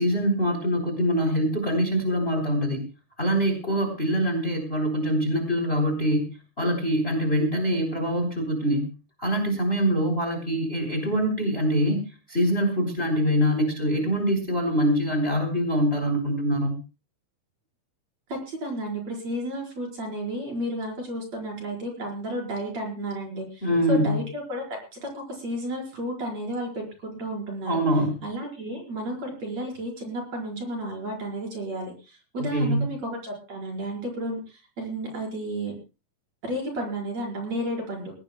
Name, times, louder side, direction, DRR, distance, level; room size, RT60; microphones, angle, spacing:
voice 1, 0.0-2.8 3.2-8.9 9.2-12.0 12.3-16.7 23.6-24.2 27.7-28.2 32.4-32.9, equal, 15° left, 4 dB, 3.6 m, -24 dB
voice 2, 18.3-27.8 28.2-34.4 34.8-35.8 36.4-38.1, right 1 dB, 45° right, 0 dB, 5.9 m, -32 dB
22.5 x 17.5 x 2.3 m, 0.30 s
omnidirectional pair, 4.1 m